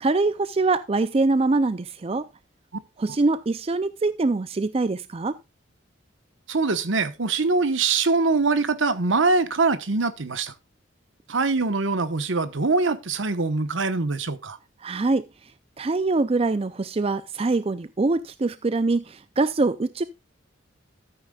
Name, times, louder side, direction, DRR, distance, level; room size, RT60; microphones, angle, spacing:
voice 1, 0.0-2.2 3.0-5.3 14.8-15.2 15.8-20.0, right 3 dB, 30° right, 0.4 m, -24 dB
voice 2, 6.5-10.5 11.3-14.6, right 3 dB, 70° right, 1.1 m, -23 dB
13.5 x 8.8 x 2.3 m
head